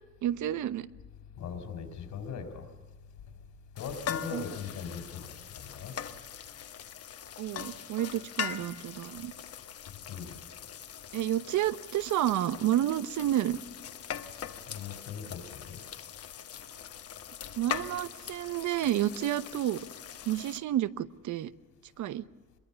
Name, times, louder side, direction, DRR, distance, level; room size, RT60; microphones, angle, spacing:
voice 1, 0.2-0.9 4.3-4.4 7.4-9.3 11.1-13.6 17.6-19.8 20.2-21.5 22.0-22.2, right 12 dB, 70° right, 0.9 m, -30 dB
voice 2, 1.4-2.7 3.7-5.9 10.1-10.4 14.7-15.8, left 6 dB, 65° left, 4.3 m, -40 dB
sound 1, 3.8-20.6, left 8 dB, 50° left, 1.4 m, -41 dB
25.0 x 23.0 x 7.0 m
cardioid pair, 150°, 31 cm